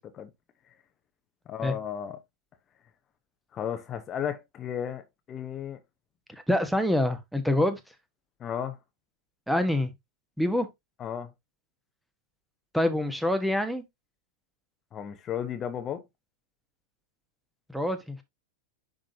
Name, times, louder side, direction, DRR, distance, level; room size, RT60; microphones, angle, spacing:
voice 1, 1.5-2.2 3.5-5.8 8.4-8.8 11.0-11.3 14.9-16.0, left 9 dB, 30° left, 0.9 m, -34 dB
voice 2, 6.5-7.8 9.5-9.9 10.4-10.7 12.7-13.8 17.7-18.2, left 1 dB, ahead, 1.2 m, -25 dB
10.0 x 3.8 x 2.8 m
figure-of-eight pair, 90°, 0 cm